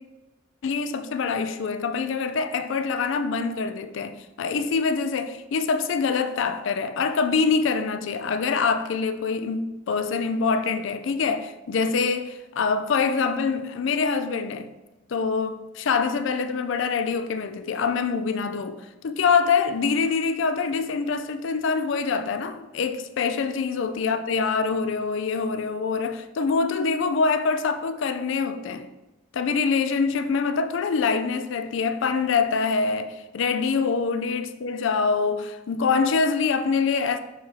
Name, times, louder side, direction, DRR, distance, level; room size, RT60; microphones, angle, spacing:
voice 1, 0.6-14.7 15.1-28.9 29.3-37.2, left 5 dB, 65° left, 0.4 m, -25 dB
6.7 x 5.5 x 2.7 m
head